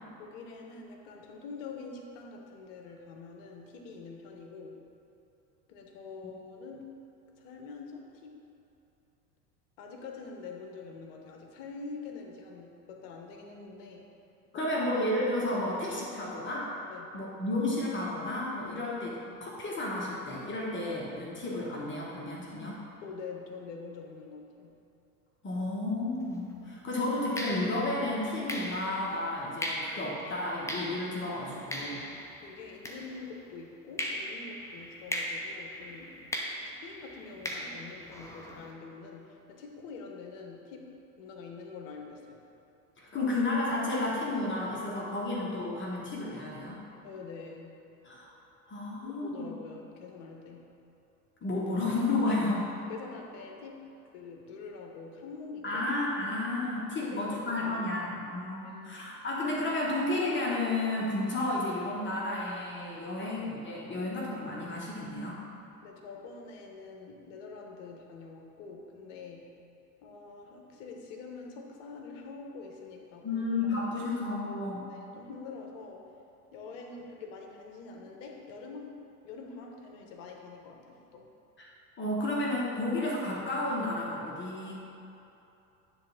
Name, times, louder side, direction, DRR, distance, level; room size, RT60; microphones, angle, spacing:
voice 1, 0.2-4.8 5.7-7.0 7.3-8.4 9.8-14.1 14.5-14.7 16.9-17.2 18.7-18.9 23.0-24.8 32.4-36.2 36.6-42.4 47.0-47.8 49.0-50.7 52.3-52.4 52.9-56.0 56.9-57.9 58.6-59.0 63.2-63.3 65.8-69.6 70.0-74.0 74.9-76.1 76.5-81.3, left 4 dB, 55° left, 2 dB, 1.1 m, -45 dB
voice 2, 14.5-16.7 17.1-22.8 25.4-32.0 43.0-46.8 48.0-48.3 48.7-49.5 51.4-52.7 55.6-65.4 73.2-74.9 81.6-81.7 82.0-84.7, left 2 dB, 25° left, -4 dB, 1.4 m, -32 dB
sound 1, 26.2-26.4 27.4-33.5 34.0-38.7, equal, 5° left, 0.7 m, -39 dB
9.9 x 3.5 x 5.9 m, 2.9 s
figure-of-eight pair, 75°, 46 cm